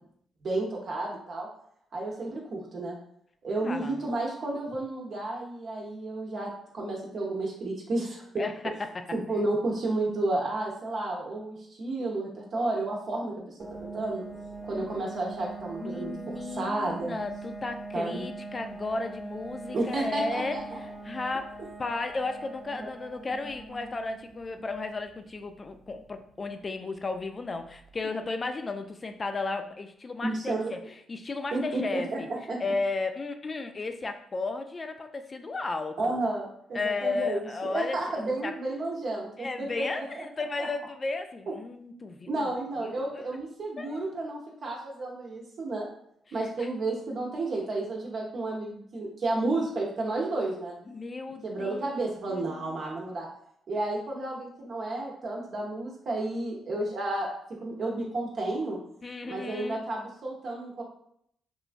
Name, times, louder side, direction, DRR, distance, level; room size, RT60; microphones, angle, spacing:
voice 1, 0.4-1.5 1.9-3.0 3.4-6.5 6.7-8.4 9.1-14.2 14.7-17.1 17.9-18.2 19.7-20.8 30.2-30.7 31.5-32.6 36.0-40.3 40.6-40.7 42.3-45.9 46.3-50.8 51.4-53.3 53.7-57.3 57.6-58.8 59.3-60.8, right 2 dB, 60° right, -2 dB, 0.7 m, -32 dB
voice 2, 3.6-4.0 8.4-8.6 14.7-15.0 15.8-21.5 21.8-32.3 32.6-36.2 36.7-38.0 38.2-38.5 39.4-42.5 42.8-43.2 43.8-44.0 46.3-46.7 50.9-52.8 59.0-59.8, left 3 dB, 35° left, 7 dB, 0.3 m, -34 dB
sound 1, 13.6-28.2, right 3 dB, 10° right, 0.6 m, -43 dB
3.1 x 2.3 x 2.5 m, 0.68 s
supercardioid pair, 65°, 0 cm